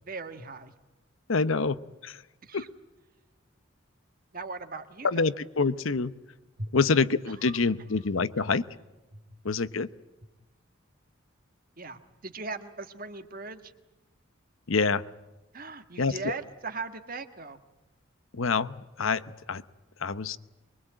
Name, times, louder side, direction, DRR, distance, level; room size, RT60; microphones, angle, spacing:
voice 1, 0.1-0.7 2.4-2.7 4.3-5.2 6.6-6.7 9.1-9.2 11.8-13.7 15.5-17.6, right 3 dB, 45° right, 9 dB, 1.5 m, -39 dB
voice 2, 1.3-2.2 2.5-2.7 5.0-6.2 6.7-8.7 9.4-9.9 14.7-15.1 16.0-16.4 18.3-19.6 20.0-20.4, left 4 dB, 80° left, 14 dB, 0.9 m, -27 dB
24.0 x 22.5 x 8.9 m, 1.1 s
head